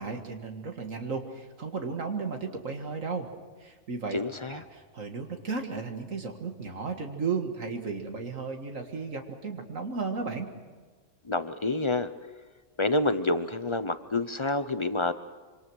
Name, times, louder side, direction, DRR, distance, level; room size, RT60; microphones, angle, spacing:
voice 1, 0.0-3.3 3.6-4.2 4.5-10.5, right 4 dB, 70° right, 4 dB, 2.1 m, -34 dB
voice 2, 4.1-4.6 11.2-12.1 12.8-15.1, left 2 dB, 30° left, 11 dB, 0.6 m, -28 dB
26.0 x 25.5 x 6.3 m, 1.4 s
omnidirectional pair, 1.4 m